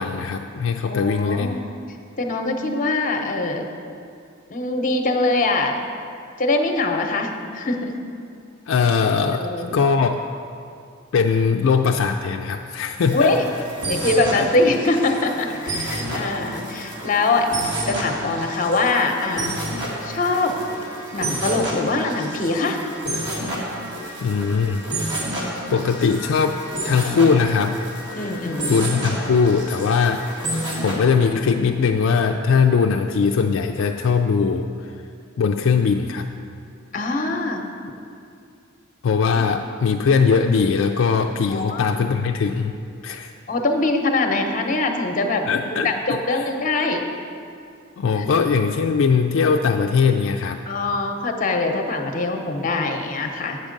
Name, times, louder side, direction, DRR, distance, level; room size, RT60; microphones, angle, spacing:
voice 1, 0.0-1.6 8.7-10.2 11.1-13.3 14.3-14.5 24.2-24.9 25.7-27.8 28.7-30.5 30.8-34.7 35.4-36.3 39.0-42.8 43.0-43.3 45.5-46.5 48.0-50.6, left 5 dB, 70° left, 4 dB, 0.3 m, -20 dB
voice 2, 0.9-1.6 2.2-3.7 4.5-5.8 6.4-7.9 9.2-9.8 13.1-13.4 13.9-17.5 17.8-19.6 20.0-20.6 21.1-22.8 28.1-29.1 36.9-37.6 39.3-39.5 41.5-42.0 43.5-47.0 48.2-48.3 50.7-53.6, left 2 dB, 45° left, 4 dB, 0.8 m, -23 dB
sound 1, 13.1-30.9, right 1 dB, 60° right, 2.0 m, -30 dB
7.9 x 7.4 x 5.2 m, 2.5 s
head